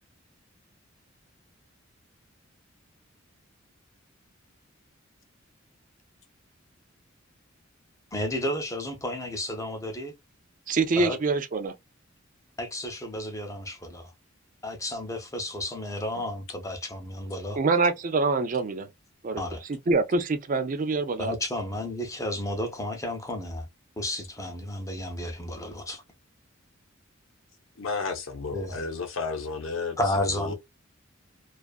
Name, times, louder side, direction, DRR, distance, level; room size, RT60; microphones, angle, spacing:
voice 1, 8.1-10.1 11.0-11.2 12.6-14.1 14.6-17.6 19.4-19.6 21.2-23.7 24.0-26.0 28.5-28.8 30.0-30.5, left 1 dB, 15° left, 0.6 m, -32 dB
voice 2, 10.7-11.7 17.6-18.9 19.2-19.4 19.7-21.3, right 3 dB, 40° right, 0.4 m, -25 dB
voice 3, 27.8-30.0 30.4-30.5, left 4 dB, 80° left, 0.8 m, -32 dB
2.6 x 2.4 x 2.3 m
head